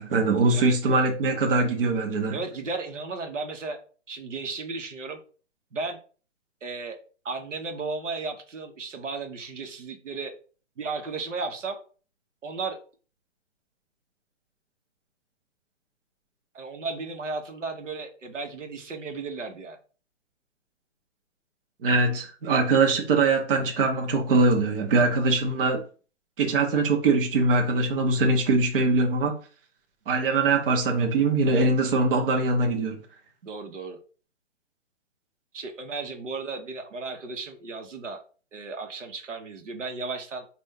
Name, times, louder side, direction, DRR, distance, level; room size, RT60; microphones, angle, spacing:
voice 1, 0.0-2.4 21.8-25.8 26.4-29.4 30.1-33.0, right 3 dB, 45° right, 1.0 m, -22 dB
voice 2, 0.5-1.0 2.3-3.8 4.1-5.2 5.7-6.0 6.6-7.0 7.2-10.3 10.8-11.8 12.4-12.8 16.5-19.8 33.4-34.0 35.5-38.2 38.5-40.5, right 4 dB, 75° right, 1.1 m, -34 dB
4.1 x 2.6 x 3.7 m
hypercardioid pair, 140°, 37 cm